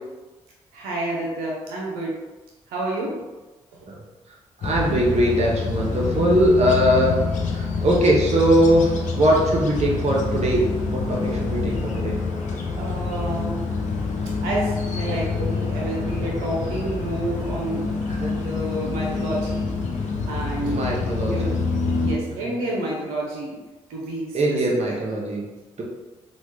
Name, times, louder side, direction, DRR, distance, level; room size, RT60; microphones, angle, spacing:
voice 1, 0.7-2.1 2.7-3.2 12.8-13.6 14.4-17.9 18.3-19.7 20.3-20.9 21.3-21.6 22.0-23.6 23.9-24.6 24.9-25.0, right 1 dB, 80° right, -3 dB, 0.7 m, -29 dB
sound 1, 4.6-22.2, left 4 dB, 60° left, 0.6 m, -26 dB
voice 2, 4.6-7.1 7.5-12.2 18.2-18.3 20.6-21.3 22.5-22.6 24.3-25.5, right 1 dB, 50° right, -3 dB, 1.0 m, -21 dB
3.1 x 2.4 x 3.2 m, 1.2 s
hypercardioid pair, 45°, 14 cm